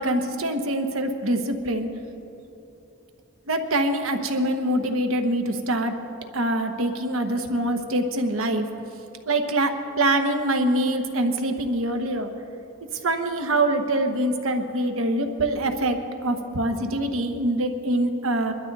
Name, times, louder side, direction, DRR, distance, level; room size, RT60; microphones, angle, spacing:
voice 1, 0.0-1.9 3.5-5.9 6.3-8.6 9.3-12.3 13.0-18.5, right 1 dB, 85° right, 6 dB, 1.2 m, -24 dB
22.5 x 12.0 x 4.1 m, 2.9 s
head